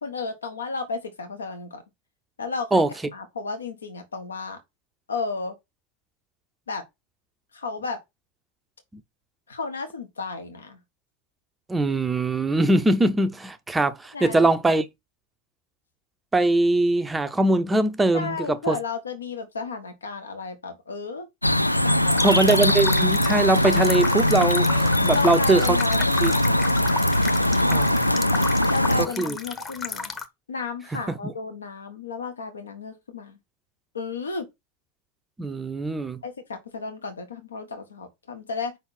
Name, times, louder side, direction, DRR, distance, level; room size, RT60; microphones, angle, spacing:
voice 1, 0.0-1.8 2.4-2.8 3.1-4.6 5.1-5.5 6.7-6.8 7.5-8.0 9.5-10.8 14.1-14.4 18.1-21.3 21.8-22.5 25.1-26.8 28.7-30.1 30.5-33.4 33.9-34.5 36.2-38.8, left 4 dB, 70° left, 1.5 m, -33 dB
voice 2, 11.7-14.9 16.3-18.8 22.2-25.8 26.2-26.3 27.7-28.1 29.0-29.4 30.9-31.3 35.4-36.2, right 2 dB, 10° right, 0.6 m, -22 dB
sound 1, 21.4-29.1, left 1 dB, 90° left, 0.3 m, -21 dB
sound 2, 22.1-30.3, left 4 dB, 15° left, 1.0 m, -34 dB
5.5 x 4.2 x 5.7 m
figure-of-eight pair, 90°, 0 cm